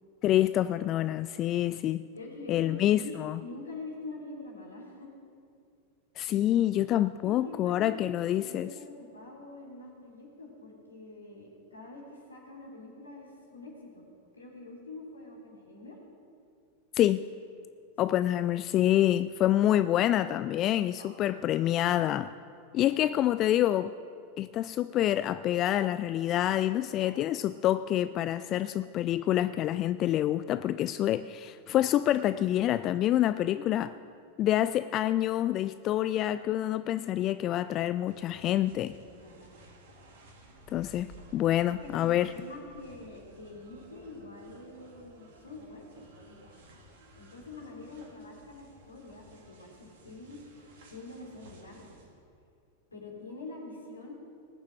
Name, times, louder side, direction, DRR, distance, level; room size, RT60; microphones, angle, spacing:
voice 1, 0.2-2.0 2.5-3.4 6.2-8.7 16.9-17.3 18.0-22.3 22.7-23.9 24.4-33.9 34.4-39.0 40.7-42.3, left 12 dB, 35° left, 14 dB, 0.3 m, -27 dB
voice 2, 2.1-5.1 6.3-6.5 7.2-8.1 8.3-14.1 14.3-16.0 21.0-21.2 26.7-27.4 33.3-33.6 39.1-39.6 41.7-46.1 47.1-50.4 50.9-52.1 52.9-54.2, left 2 dB, 75° left, -1 dB, 3.5 m, -45 dB
sound 1, 38.1-52.0, right 1 dB, 55° right, 2.6 m, -55 dB
19.5 x 7.3 x 7.7 m, 2.4 s
figure-of-eight pair, 90°, 0 cm